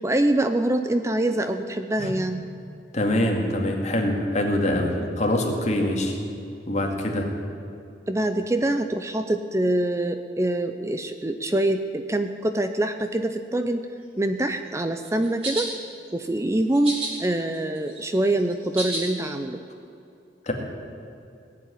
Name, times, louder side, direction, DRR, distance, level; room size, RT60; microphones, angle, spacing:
voice 1, 0.0-2.5 8.1-13.9 14.2-15.7 16.1-19.6, right 1 dB, 15° right, 8 dB, 0.5 m, -25 dB
voice 2, 2.9-6.2 6.7-7.3 20.5-20.6, left 1 dB, 40° left, 1 dB, 2.2 m, -24 dB
sound 1, 15.0-15.7 16.7-17.1 17.5-19.0, right 1 dB, 35° right, 4.6 m, -30 dB
18.5 x 7.6 x 10.0 m, 2.6 s
head